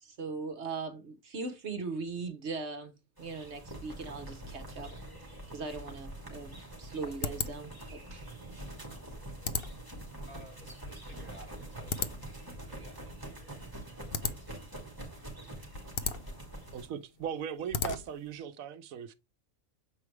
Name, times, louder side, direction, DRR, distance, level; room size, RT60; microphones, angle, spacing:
voice 1, 0.0-2.9 3.2-4.9 5.5-8.3, right 4 dB, 55° right, 1.2 m, -39 dB
sound 1, 3.2-16.9, right 1 dB, 15° right, 2.6 m, -45 dB
sound 2, 6.1-18.4, left 6 dB, 50° left, 0.8 m, -39 dB
voice 2, 10.3-12.2 12.7-13.6 14.2-14.8, equal, 10° left, 1.7 m, -55 dB
voice 3, 16.7-19.1, right 8 dB, 85° right, 1.1 m, -38 dB
7.7 x 4.7 x 3.2 m
omnidirectional pair, 1.4 m